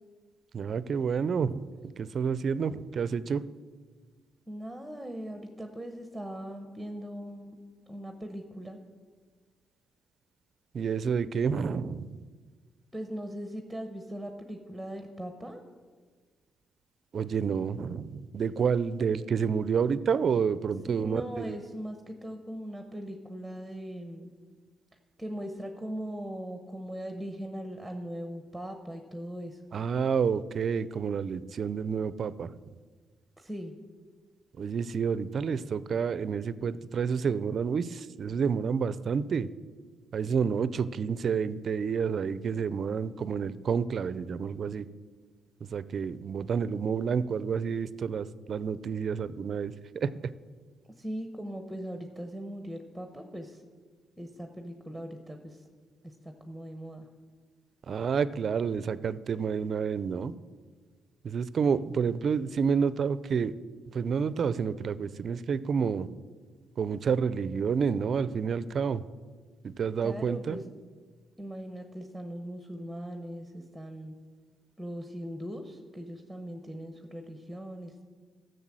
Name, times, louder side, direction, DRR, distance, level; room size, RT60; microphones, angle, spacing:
voice 1, 0.5-3.4 10.7-12.2 17.1-21.6 29.7-32.5 34.6-39.5 40.1-44.8 45.7-50.1 57.9-60.3 61.2-63.5 63.9-66.1 66.8-69.0 69.6-70.6, right 6 dB, 50° right, 16 dB, 0.5 m, -29 dB
voice 2, 4.5-7.6 7.9-8.8 12.9-15.6 20.9-24.3 25.2-29.6 33.4-33.7 51.0-53.6 54.2-55.6 56.0-57.1 70.0-70.6 71.4-74.2 74.8-78.0, equal, ahead, 5 dB, 1.1 m, -40 dB
12.5 x 6.8 x 7.6 m, 1.5 s
cardioid pair, 90°, 0 cm